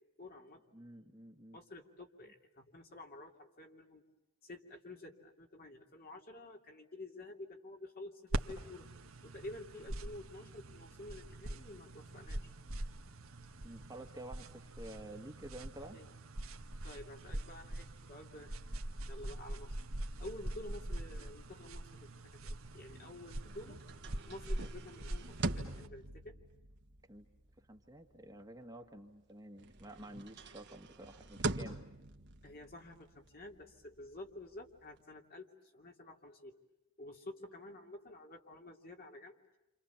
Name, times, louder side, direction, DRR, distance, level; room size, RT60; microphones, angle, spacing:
voice 1, 0.2-0.6 1.5-4.0 4.4-8.9 9.2-12.5 15.9-16.1 16.8-18.6 19.1-19.8 20.2-22.1 22.4-23.8 24.3-26.4 32.4-36.6 37.0-39.4, left 1 dB, 45° left, 2 dB, 2.9 m, -50 dB
voice 2, 0.7-1.6 13.6-16.0 27.1-27.3 27.6-31.8, right 1 dB, 15° right, 4 dB, 1.6 m, -50 dB
sound 1, 8.3-25.9, right 1 dB, 80° right, 1.6 m, -43 dB
sound 2, 22.8-29.3 29.6-35.0, right 2 dB, 55° right, 1.6 m, -44 dB
29.0 x 28.0 x 7.2 m, 0.91 s
head